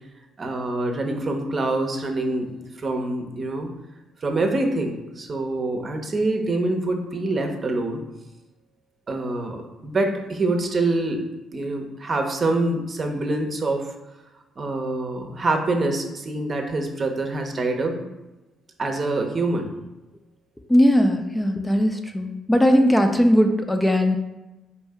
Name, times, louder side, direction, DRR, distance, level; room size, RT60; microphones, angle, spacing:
voice 1, 0.4-2.5 2.8-3.7 4.2-8.0 9.1-11.2 11.5-13.9 14.6-18.0 18.8-19.7, right 2 dB, 45° right, 3 dB, 0.8 m, -25 dB
voice 2, 20.7-24.2, equal, 10° left, 4 dB, 0.5 m, -19 dB
4.3 x 2.7 x 3.4 m, 1.0 s
hypercardioid pair, 55°, 0 cm